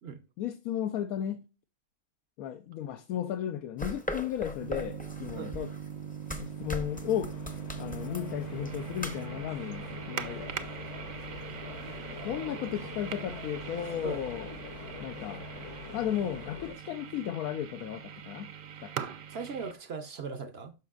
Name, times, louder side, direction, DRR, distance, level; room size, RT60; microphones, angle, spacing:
voice 1, 0.4-1.4 2.4-5.7 6.4-7.3 7.8-10.7 12.2-14.5 15.0-15.4 15.9-18.5 18.8-19.0, left 10 dB, 80° left, 1.1 m, -34 dB
sound 1, 3.8-9.2, left 1 dB, 10° left, 0.5 m, -40 dB
sound 2, 4.6-19.7, right 8 dB, 75° right, 0.4 m, -41 dB
sound 3, 5.9-16.7, left 5 dB, 60° left, 1.2 m, -45 dB
voice 2, 12.1-12.6 14.0-14.2 19.3-20.7, right 5 dB, 55° right, 0.8 m, -39 dB
12.5 x 5.0 x 2.4 m
omnidirectional pair, 1.5 m